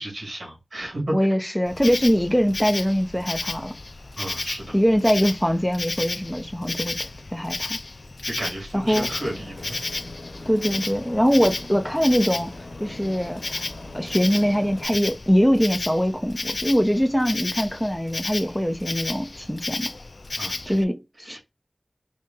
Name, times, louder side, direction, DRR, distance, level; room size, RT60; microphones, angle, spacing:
voice 1, 0.0-1.1 4.2-4.8 8.2-9.8 20.4-20.8 21.2-21.4, right 1 dB, 80° right, 2.4 m, -33 dB
voice 2, 1.1-3.7 4.7-7.8 8.9-9.1 10.5-12.5 12.8-13.6 13.9-19.9 20.7-21.4, equal, 5° left, 0.9 m, -22 dB
Insect, 1.7-20.8, left 2 dB, 65° left, 0.4 m, -33 dB
Aircraft, 8.8-14.8, left 2 dB, 85° left, 1.0 m, -41 dB
4.2 x 2.4 x 3.8 m
wide cardioid pair, 45°, 0 cm